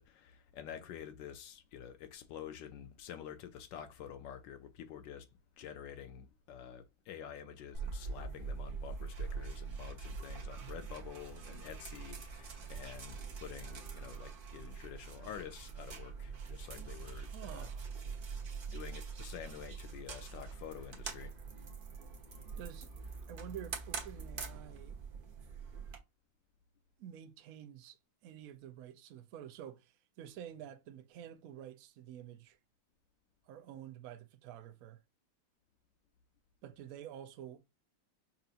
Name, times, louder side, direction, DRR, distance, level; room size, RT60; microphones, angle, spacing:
voice 1, 0.0-5.3 5.6-17.7 18.7-21.3, left 9 dB, 75° left, 1.2 m, -48 dB
sound 1, 7.7-26.0, right 5 dB, 45° right, 0.7 m, -44 dB
voice 2, 17.1-17.9 22.6-22.9 23.3-25.0 27.0-32.6 33.4-35.0 36.6-37.6, right 10 dB, 75° right, 0.8 m, -49 dB
5.6 x 2.7 x 2.4 m
omnidirectional pair, 2.1 m